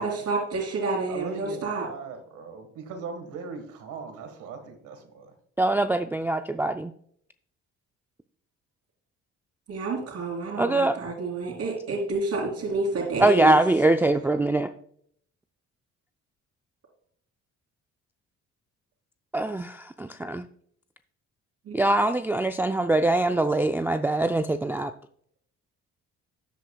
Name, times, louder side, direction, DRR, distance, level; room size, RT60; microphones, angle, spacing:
voice 1, 0.0-1.9 9.7-13.6 21.6-21.8, right 3 dB, 65° right, -6 dB, 3.2 m, -29 dB
voice 2, 1.1-5.3 12.6-13.2, right 5 dB, 90° right, 7 dB, 1.6 m, -40 dB
voice 3, 5.6-6.9 10.6-10.9 13.2-14.7 19.3-20.4 21.7-24.9, right 2 dB, 5° right, 8 dB, 0.3 m, -23 dB
13.5 x 8.2 x 2.3 m, 0.64 s
cardioid pair, 90°, 30 cm